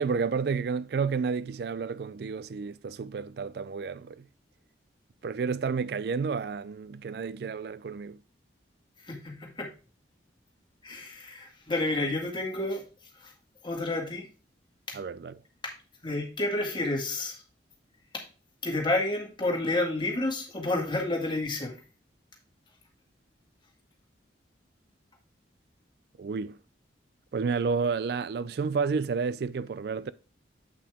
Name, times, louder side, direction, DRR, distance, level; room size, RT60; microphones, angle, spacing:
voice 1, 0.0-4.3 5.2-8.2 14.9-15.4 26.2-26.6 27.3-30.1, right 5 dB, 60° right, 0.3 m, -30 dB
voice 2, 9.1-9.7 10.8-12.8 13.2-13.3 13.6-14.3 15.6-15.7 16.0-17.4 18.1-18.2 18.6-21.7, left 2 dB, 25° left, 1.9 m, -30 dB
8.3 x 5.7 x 3.5 m
head